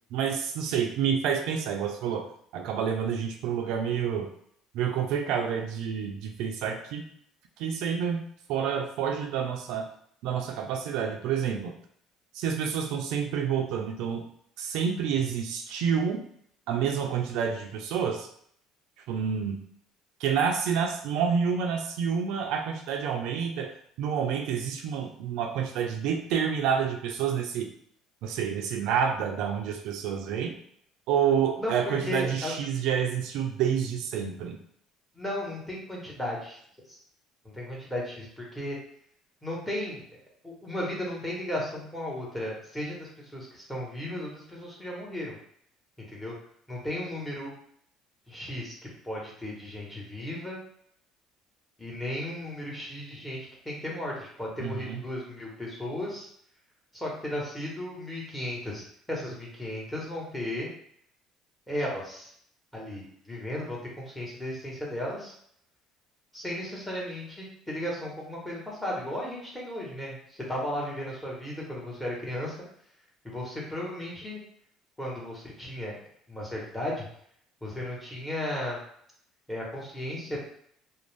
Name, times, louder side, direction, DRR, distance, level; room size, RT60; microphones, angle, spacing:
voice 1, 0.1-2.3 2.5-4.3 4.7-7.1 7.6-9.9 10.2-11.7 12.3-14.2 14.6-16.2 16.7-18.3 19.1-19.6 20.2-27.7 28.2-30.6 31.1-34.6 54.6-55.0, right 7 dB, 75° right, 4 dB, 0.3 m, -28 dB
voice 2, 31.6-32.5 35.1-36.6 36.9-37.0 37.5-38.8 39.4-40.0 40.4-45.4 46.0-46.3 46.7-47.5 48.3-48.7 49.0-50.6 51.8-56.3 56.9-58.8 59.1-60.7 61.7-62.3 62.7-65.3 66.3-72.6 73.2-74.4 75.0-76.0 76.3-77.1 77.6-78.8 79.5-80.4, left 1 dB, 10° left, -4 dB, 1.1 m, -35 dB
2.5 x 2.0 x 3.2 m, 0.65 s
cardioid pair, 105°, 0 cm